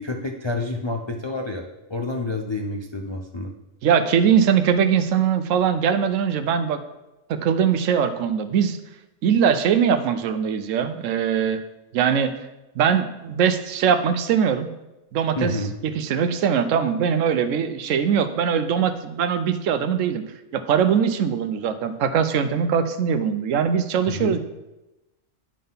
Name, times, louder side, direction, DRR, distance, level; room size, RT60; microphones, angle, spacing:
voice 1, 0.0-3.5 15.4-15.7 24.1-24.4, left 2 dB, 45° left, 1 dB, 0.3 m, -29 dB
voice 2, 3.8-6.8 7.3-8.8 9.2-11.6 11.9-12.3 12.8-14.7 15.1-15.6 15.8-20.2 20.5-24.4, right 7 dB, 75° right, 11 dB, 0.9 m, -21 dB
9.7 x 3.7 x 5.5 m, 1.0 s
omnidirectional pair, 1.4 m